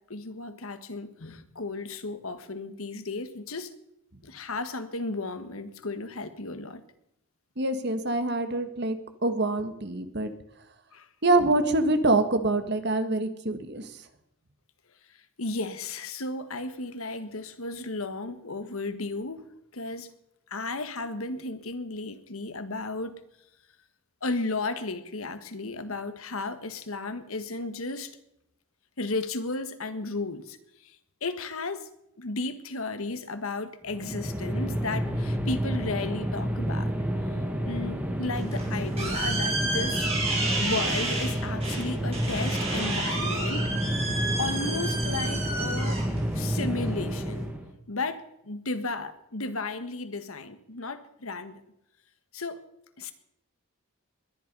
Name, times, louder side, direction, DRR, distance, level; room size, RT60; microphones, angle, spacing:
voice 1, 0.0-3.7 4.2-6.8 10.9-11.1 15.4-19.4 19.7-20.1 20.5-23.2 24.2-28.1 29.0-30.6 30.8-30.9 31.2-31.9 32.2-36.9 37.6-40.1 40.6-43.7 44.4-46.0 46.3-47.5 47.9-51.6 52.3-52.6 53.0-53.1, left 3 dB, 75° left, 1.5 m, -34 dB
voice 2, 7.6-9.0 9.2-10.3 11.2-13.8, right 2 dB, 50° right, 1.6 m, -25 dB
sound 1, 33.9-47.7, equal, 5° right, 1.8 m, -30 dB
sound 2, 38.3-47.4, right 2 dB, 30° right, 4.5 m, -32 dB
21.0 x 10.5 x 5.4 m
head